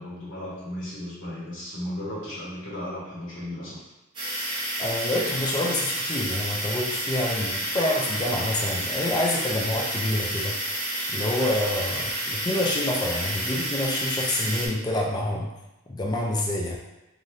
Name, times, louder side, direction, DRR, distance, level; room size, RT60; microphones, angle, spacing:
voice 1, 0.0-3.9, left 1 dB, 75° left, -7 dB, 1.2 m, -35 dB
sound 1, 4.1-14.7, right 1 dB, 25° right, 0.8 m, -30 dB
voice 2, 4.8-10.5 11.1-15.5 15.9-16.8, left 1 dB, 20° left, -1 dB, 0.3 m, -27 dB
3.2 x 2.5 x 2.6 m, 0.97 s
head